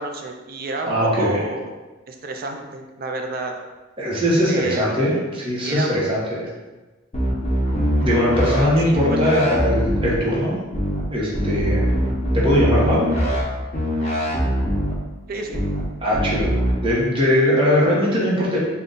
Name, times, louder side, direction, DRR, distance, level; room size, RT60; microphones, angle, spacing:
voice 1, 0.0-1.7 2.1-3.5 4.5-5.3 5.6-6.0 8.8-9.8 15.3-15.6, right 2 dB, 50° right, 4 dB, 0.4 m, -30 dB
voice 2, 0.9-1.4 4.0-6.5 8.0-10.6 11.1-11.9 12.3-13.1 16.0-16.5 16.8-18.6, equal, 25° right, -5 dB, 0.8 m, -20 dB
sound 1, 7.1-8.6 8.9-10.1 10.7-11.0 11.3-13.4 13.7-14.9 15.5-15.8 16.1-16.7, equal, 30° left, 0.8 m, -22 dB
3.8 x 2.2 x 3.7 m, 1.2 s
head